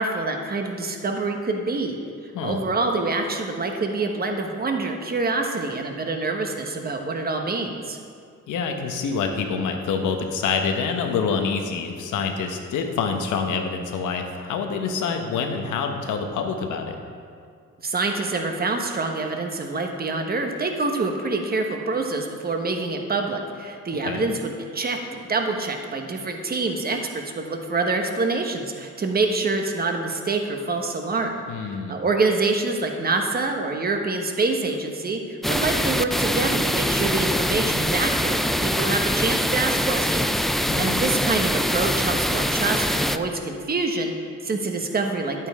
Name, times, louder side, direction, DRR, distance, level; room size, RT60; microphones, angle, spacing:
voice 1, 0.0-2.0 2.4-8.0 17.8-31.4 31.7-45.5, right 3 dB, 30° right, 3 dB, 1.2 m, -26 dB
voice 2, 8.5-17.0 24.0-24.3 31.5-32.0 40.6-41.0, left 5 dB, 85° left, 4 dB, 1.2 m, -26 dB
sound 1, 35.4-43.2, equal, ahead, 0.3 m, -23 dB
11.0 x 8.8 x 3.7 m, 2.2 s
cardioid pair, 90°, 30 cm